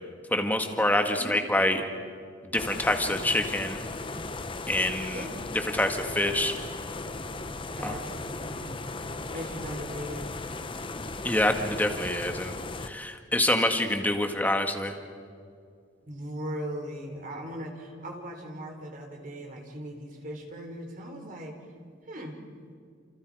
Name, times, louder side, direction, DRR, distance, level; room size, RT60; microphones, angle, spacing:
voice 1, 0.3-1.8 2.5-3.8 4.7-5.2 5.7-6.5 7.8-7.9 11.2-12.5 12.8-14.9, left 1 dB, 10° left, 5 dB, 1.8 m, -26 dB
sound 1, 2.6-12.9, left 3 dB, 25° left, 0.9 m, -37 dB
voice 2, 7.8-8.8 9.3-10.3 16.1-21.6 22.1-22.4, equal, 40° right, 2 dB, 3.8 m, -38 dB
30.0 x 28.0 x 4.9 m, 2.2 s
head